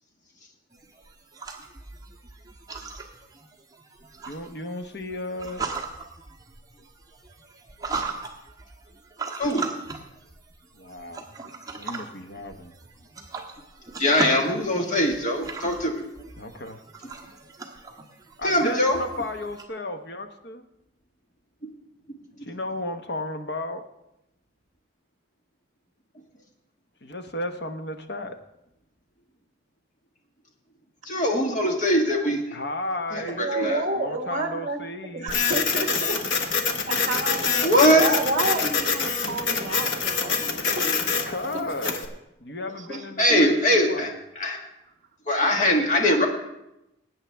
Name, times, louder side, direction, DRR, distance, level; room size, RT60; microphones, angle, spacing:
sound 1, 0.7-19.6, right 4 dB, 20° right, 1.2 m, -38 dB
voice 1, 4.3-5.7 10.7-11.2 11.8-12.7 15.6-15.8 16.4-16.8 18.4-20.6 22.4-23.9 27.0-28.4 32.5-33.5 34.0-35.4 41.3-42.0 42.4-44.1, left 1 dB, 60° left, 6 dB, 0.9 m, -34 dB
voice 2, 9.4-9.8 14.0-16.0 18.4-19.0 22.4-22.5 31.0-32.4 33.1-33.8 37.6-38.0 43.2-44.6 45.3-46.3, equal, 40° left, 2 dB, 1.7 m, -22 dB
voice 3, 33.1-34.8 35.1-41.1 42.8-43.0 43.3-43.4, right 2 dB, 40° right, 4 dB, 1.3 m, -30 dB
Printer, 35.3-42.1, left 5 dB, 80° left, 1.2 m, -26 dB
20.0 x 9.0 x 3.4 m, 0.87 s
head